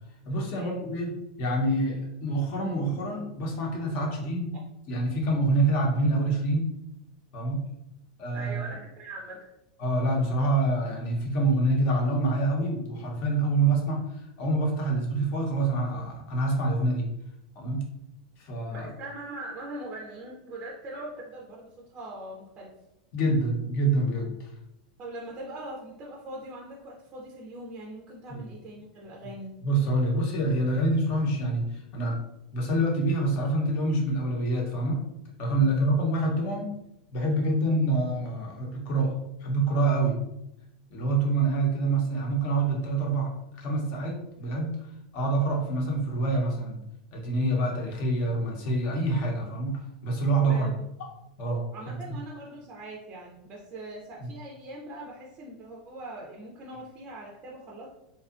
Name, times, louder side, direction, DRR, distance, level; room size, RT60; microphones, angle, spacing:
voice 1, 0.3-1.1 1.4-4.5 4.9-6.6 7.3-7.6 8.2-8.6 9.8-14.0 14.4-17.1 17.6-17.8 18.4-18.9 23.1-24.5 28.3-28.4 29.6-32.2 32.5-35.0 35.4-36.7 37.1-39.1 39.4-40.1 40.9-44.7 45.1-46.8 47.1-50.7 51.4-51.6, right 2 dB, 45° left, 0 dB, 0.8 m, -26 dB
voice 2, 8.3-9.5 18.7-22.7 25.0-29.5 35.6-36.0 50.5-50.7 51.7-57.9, right 1 dB, 25° right, -2 dB, 0.5 m, -41 dB
2.6 x 2.3 x 2.4 m, 0.86 s
supercardioid pair, 130°, 4 cm